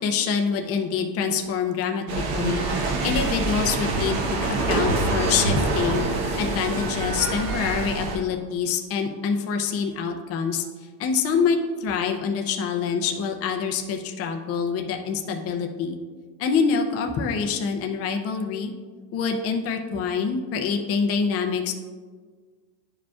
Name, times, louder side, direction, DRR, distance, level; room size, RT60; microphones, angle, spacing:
voice 1, 0.0-2.0 2.3-2.6 3.0-4.2 4.7-6.0 6.4-10.6 11.0-16.0 16.4-18.7 19.1-21.7, left 6 dB, 30° left, 3 dB, 0.5 m, -25 dB
sound 1, 2.1-8.2, right 3 dB, 50° right, 1.2 m, -25 dB
11.0 x 5.1 x 2.3 m, 1.5 s
cardioid pair, 155°, 48 cm